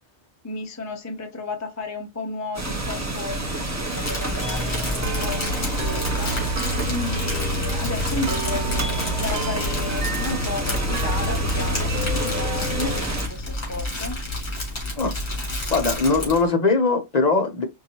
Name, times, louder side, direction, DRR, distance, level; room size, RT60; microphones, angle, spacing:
voice 1, 0.4-14.2, left 2 dB, 25° left, 0.4 m, -33 dB
sound 1, 2.5-13.3, right 1 dB, 15° right, 0.8 m, -29 dB
Crumpling crinkling, 3.9-16.5, left 1 dB, 55° left, 2.2 m, -30 dB
sound 2, 4.4-13.0, equal, 60° right, 1.3 m, -30 dB
voice 2, 15.7-17.6, left 3 dB, 40° left, 0.8 m, -20 dB
4.6 x 2.7 x 2.8 m
omnidirectional pair, 1.3 m